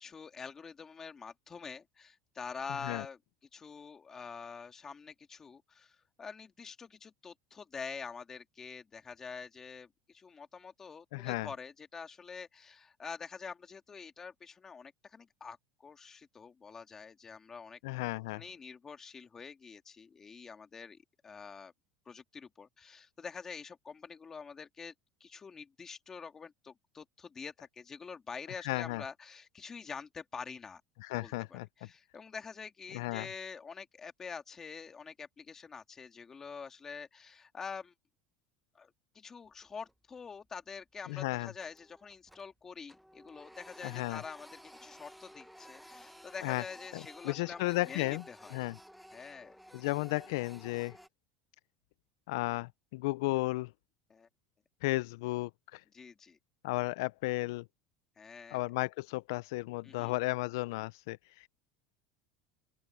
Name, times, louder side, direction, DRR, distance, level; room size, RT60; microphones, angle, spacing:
voice 1, 0.0-3.2 3.5-15.6 15.8-17.8 18.3-21.0 21.2-21.7 22.1-24.9 25.2-30.8 31.2-37.9 38.8-48.6 49.1-49.6 54.1-54.3 55.9-56.4 58.2-58.6 59.8-60.1, left 5 dB, 20° left, 1.9 m, -46 dB
voice 2, 11.1-11.5 17.8-18.4 28.6-29.0 31.0-31.9 32.9-33.3 41.1-41.5 43.8-44.2 46.4-46.6 46.9-48.2 48.5-48.8 49.7-51.0 52.3-53.7 54.8-55.8 56.6-57.7 58.5-61.5, left 21 dB, 80° left, 0.4 m, -34 dB
Printer, 39.5-40.1 40.5-40.6 41.0-42.6 42.9-51.1, equal, ahead, 0.9 m, -54 dB
open air
supercardioid pair, 140°, 2 cm